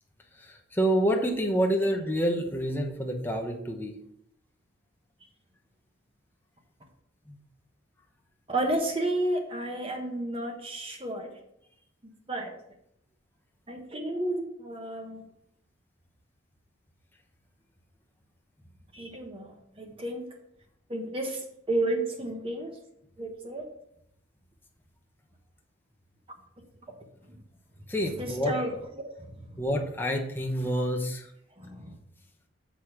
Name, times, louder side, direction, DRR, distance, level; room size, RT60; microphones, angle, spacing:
voice 1, 0.4-3.9 7.3-7.4 27.9-28.5 29.6-31.3, equal, 10° left, 1 dB, 0.9 m, -28 dB
voice 2, 8.5-11.3 12.3-12.5 13.7-15.2 18.9-20.3 20.9-21.4 21.7-22.7 23.2-23.7 28.2-29.5 31.6-32.0, right 1 dB, 30° right, 3 dB, 1.1 m, -32 dB
6.7 x 5.0 x 5.9 m, 0.76 s
head